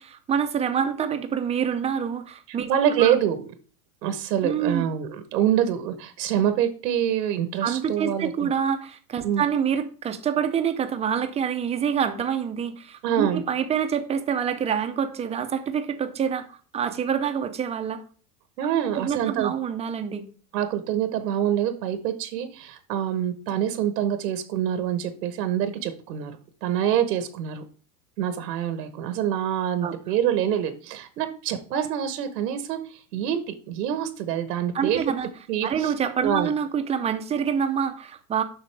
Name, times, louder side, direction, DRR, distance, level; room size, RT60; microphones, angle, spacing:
voice 1, 0.0-2.7 3.0-3.1 4.4-4.9 7.6-18.0 18.9-20.3 29.8-29.9 34.7-35.3 35.6-38.4, right 7 dB, 15° right, 8 dB, 0.5 m, -26 dB
voice 2, 2.5-3.4 4.0-8.5 9.2-9.4 13.0-13.4 18.6-19.5 20.5-26.3 26.6-27.6 28.2-35.0 35.5-35.9 36.2-36.5, right 10 dB, 85° right, 9 dB, 1.2 m, -26 dB
7.7 x 5.6 x 3.3 m, 0.40 s
supercardioid pair, 130°, 48 cm